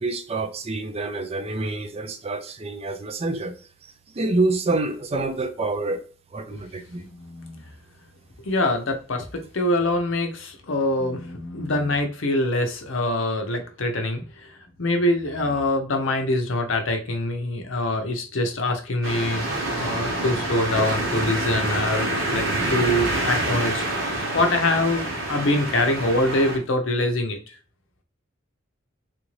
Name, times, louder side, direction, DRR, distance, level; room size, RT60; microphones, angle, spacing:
voice 1, 0.0-3.5 4.2-6.0 6.3-7.0, right 2 dB, 30° right, 0.5 m, -27 dB
voice 2, 7.1-7.6 8.5-14.2 14.8-23.8 24.3-27.4, left 1 dB, 70° left, 0.7 m, -24 dB
sound 1, 19.0-26.6, right 1 dB, 75° right, 1.1 m, -27 dB
3.4 x 2.6 x 3.1 m
head